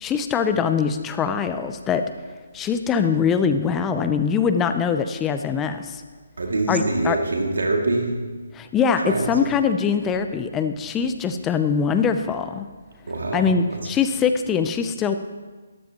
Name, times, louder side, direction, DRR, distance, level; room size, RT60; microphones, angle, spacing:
voice 1, 0.0-2.0 2.5-6.0 6.7-7.2 8.5-12.7 13.3-15.2, left 6 dB, 15° left, 8 dB, 0.5 m, -22 dB
voice 2, 6.4-8.2 9.0-9.3 13.1-13.8, right 2 dB, 80° right, 1 dB, 2.3 m, -24 dB
13.0 x 12.5 x 3.0 m, 1.3 s
hypercardioid pair, 155°, 0 cm